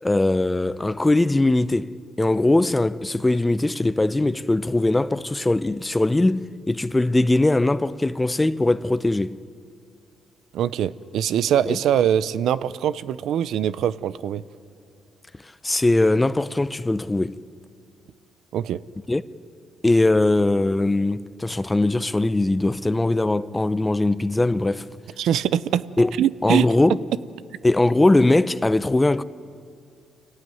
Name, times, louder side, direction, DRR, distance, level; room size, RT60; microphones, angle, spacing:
voice 1, 0.0-9.4 11.7-11.8 15.6-17.4 19.1-19.2 19.8-24.9 26.0-26.1 26.4-27.0 27.6-29.2, left 2 dB, 15° left, 0.6 m, -20 dB
voice 2, 10.5-14.4 18.5-18.8 25.2-25.8 26.2-26.7, right 10 dB, 75° right, 0.6 m, -23 dB
26.5 x 17.5 x 9.3 m
cardioid pair, 90°, 0 cm